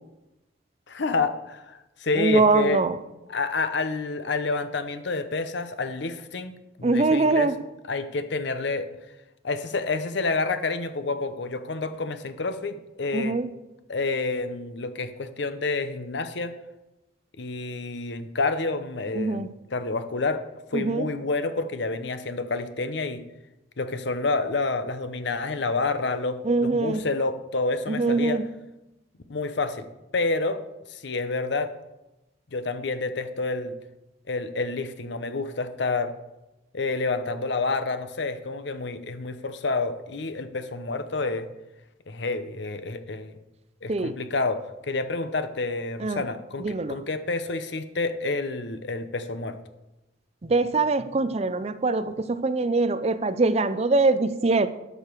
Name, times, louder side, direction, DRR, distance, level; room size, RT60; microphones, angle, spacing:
voice 1, 0.9-2.8 3.3-6.5 6.8-7.5 7.9-8.9 9.4-13.4 13.9-16.5 17.4-20.4 20.7-23.2 23.8-28.4 29.3-29.9 30.1-30.6 30.9-31.7 32.5-33.7 34.3-36.1 36.7-41.5 42.1-43.3 43.8-49.6, left 3 dB, 60° left, 10 dB, 0.8 m, -29 dB
voice 2, 2.2-3.0 6.8-7.6 13.1-13.5 19.1-19.5 20.7-21.1 26.4-27.0 27.9-28.4 43.9-44.2 46.0-46.2 46.6-47.0 50.4-54.7, right 3 dB, 30° right, 12 dB, 0.5 m, -23 dB
12.0 x 6.6 x 4.6 m, 0.98 s
head